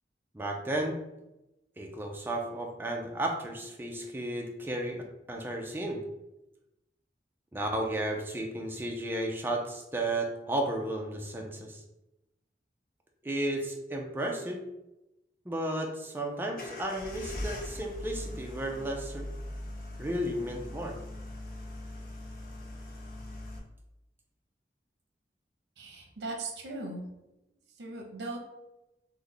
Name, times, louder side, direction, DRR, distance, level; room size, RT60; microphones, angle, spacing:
voice 1, 0.3-1.0 1.8-5.0 5.3-6.0 7.5-11.8 13.2-14.6 15.5-19.3 20.0-21.0, right 1 dB, 10° right, 1 dB, 0.4 m, -33 dB
sound 1, 16.5-23.6, left 1 dB, 50° left, 0.6 m, -41 dB
voice 2, 25.8-27.0 27.7-28.4, right 2 dB, 70° right, 1 dB, 0.7 m, -38 dB
3.2 x 2.1 x 3.8 m, 0.96 s
head